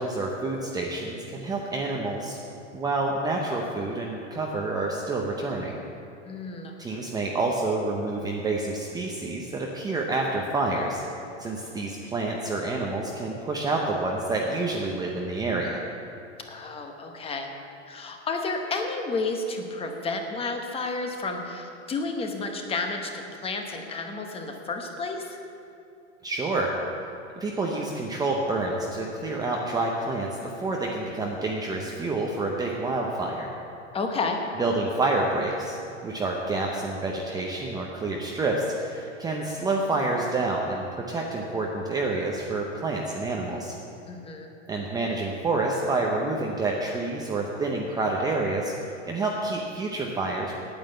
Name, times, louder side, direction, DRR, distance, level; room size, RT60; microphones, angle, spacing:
voice 1, 0.0-2.4 2.7-5.7 6.8-11.0 11.4-15.8 26.2-26.7 27.4-30.3 30.6-33.5 34.6-43.7 44.7-50.5, right 2 dB, 10° right, -1 dB, 0.6 m, -28 dB
voice 2, 6.2-6.7 16.5-17.5 17.9-25.4 33.9-34.4 44.1-44.5, left 3 dB, 15° left, 3 dB, 1.0 m, -31 dB
9.1 x 8.8 x 7.9 m, 2.6 s
supercardioid pair, 150°, 36 cm